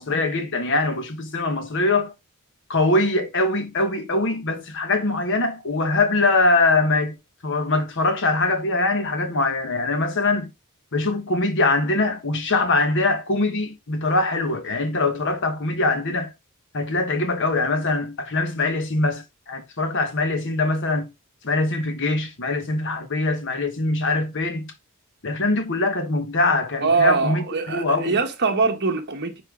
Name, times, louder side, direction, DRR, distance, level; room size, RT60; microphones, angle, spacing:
voice 1, 0.0-2.1 2.7-7.2 7.4-10.5 10.9-16.3 16.7-21.1 21.4-24.7 25.2-28.1, left 2 dB, 55° left, 1.3 m, -22 dB
voice 2, 26.8-29.4, right 4 dB, 50° right, 1.3 m, -22 dB
10.5 x 4.2 x 3.8 m
head